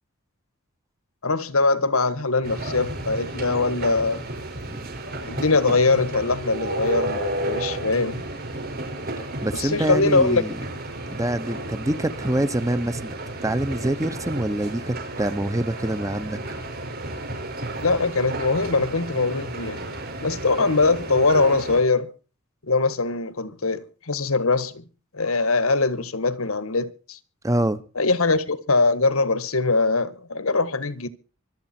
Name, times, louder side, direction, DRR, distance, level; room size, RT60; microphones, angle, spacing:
voice 1, 1.2-4.2 5.3-8.3 9.5-10.4 17.8-19.9 20.2-22.1 22.6-24.8 25.1-27.2 27.9-31.1, left 3 dB, 85° left, 1.5 m, -22 dB
sound 1, 2.4-21.8, right 2 dB, 45° right, 5.5 m, -32 dB
voice 2, 9.1-10.6 11.1-13.1 13.4-16.4 27.4-27.8, right 1 dB, 15° right, 0.9 m, -25 dB
25.0 x 8.6 x 4.4 m
head